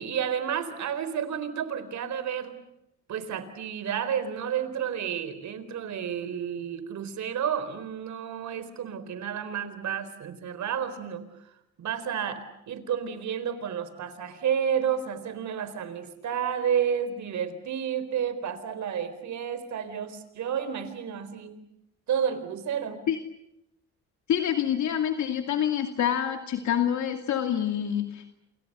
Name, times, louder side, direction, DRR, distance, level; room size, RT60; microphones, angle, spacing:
voice 1, 0.0-2.6 3.1-11.2 11.8-21.5 22.1-23.0, right 8 dB, 70° right, 12 dB, 4.2 m, -31 dB
voice 2, 24.3-28.4, left 9 dB, 70° left, 6 dB, 2.5 m, -27 dB
28.5 x 28.0 x 6.8 m, 0.83 s
cardioid pair, 90°, 30 cm